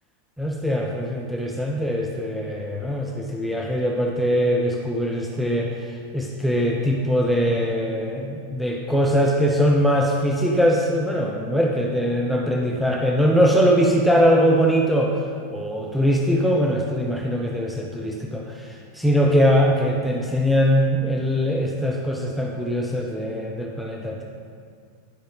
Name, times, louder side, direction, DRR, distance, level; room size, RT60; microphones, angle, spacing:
voice 1, 0.4-15.2 15.5-24.2, equal, ahead, -1 dB, 0.6 m, -21 dB
11.5 x 4.9 x 3.9 m, 2.2 s
figure-of-eight pair, 90°, 0 cm